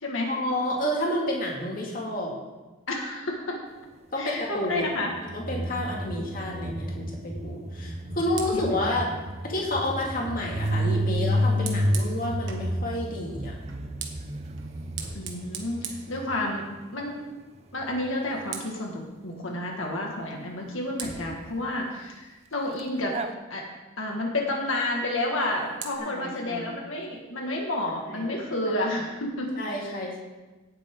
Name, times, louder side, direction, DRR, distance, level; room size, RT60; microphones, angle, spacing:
voice 1, 0.3-2.3 4.1-4.9 5.3-9.1 9.4-13.5 26.0-26.7 28.1-28.3 28.7-28.8 29.6-30.2, left 1 dB, 45° left, -2 dB, 2.3 m, -30 dB
voice 2, 2.9-3.6 4.2-5.1 6.2-6.3 8.1-8.2 8.5-9.0 15.1-16.7 16.9-17.2 17.7-23.1 23.5-23.6 24.0-30.0, left 1 dB, 75° left, 0 dB, 1.9 m, -30 dB
sound 1, 5.0-16.6 22.8-22.9 23.1-23.3, equal, 30° right, 0.6 m, -30 dB
Fire, 8.3-12.7 13.6-16.9 17.2-17.5 17.8-18.9 20.3-20.4 21.0-23.3 25.2-26.0, right 6 dB, 65° right, 1.5 m, -43 dB
17.5 x 8.1 x 3.8 m, 1.2 s
head